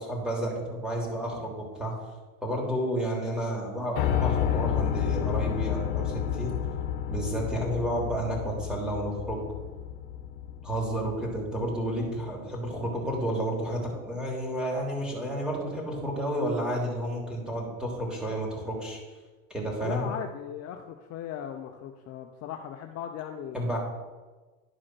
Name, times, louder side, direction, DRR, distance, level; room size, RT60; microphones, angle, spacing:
voice 1, 0.0-1.9 2.4-6.5 7.1-9.4 10.6-19.0 19.5-20.1 23.5-23.8, right 1 dB, ahead, -2 dB, 3.2 m, -31 dB
Piano, 4.0-12.0, left 9 dB, 60° left, 1.2 m, -30 dB
voice 2, 19.8-23.6, left 9 dB, 40° left, 4 dB, 0.8 m, -38 dB
11.0 x 4.9 x 6.0 m, 1.3 s
supercardioid pair, 110°, 38 cm